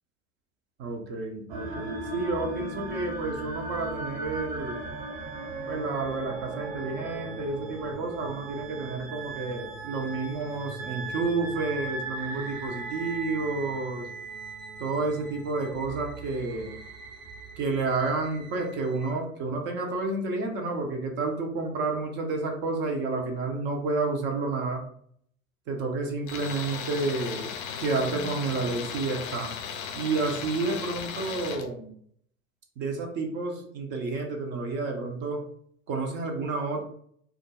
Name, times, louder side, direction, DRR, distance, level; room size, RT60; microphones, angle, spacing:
voice 1, 0.8-4.8 5.7-14.1 14.8-16.8 17.6-24.8 25.7-27.5 27.8-29.5 29.9-31.9 32.8-35.4 35.9-36.8, right 3 dB, 30° right, 2 dB, 0.4 m, -30 dB
sound 1, 1.5-19.1, right 3 dB, 70° right, 0.7 m, -38 dB
Tools, 26.3-31.7, left 6 dB, 45° left, 0.4 m, -36 dB
2.3 x 2.1 x 2.8 m, 0.63 s
figure-of-eight pair, 80°, 41 cm